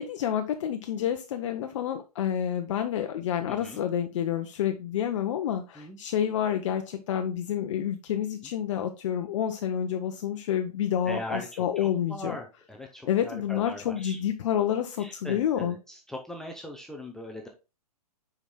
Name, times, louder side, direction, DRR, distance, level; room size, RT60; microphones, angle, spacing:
voice 1, 0.0-12.4 13.1-15.8, left 9 dB, 50° left, 6 dB, 0.8 m, -29 dB
voice 2, 3.5-3.8 5.8-6.0 11.1-11.5 12.1-14.2 15.0-15.8 16.1-17.5, left 1 dB, ahead, 1 dB, 0.6 m, -39 dB
9.8 x 4.9 x 2.2 m, 0.28 s
hypercardioid pair, 135°, 20 cm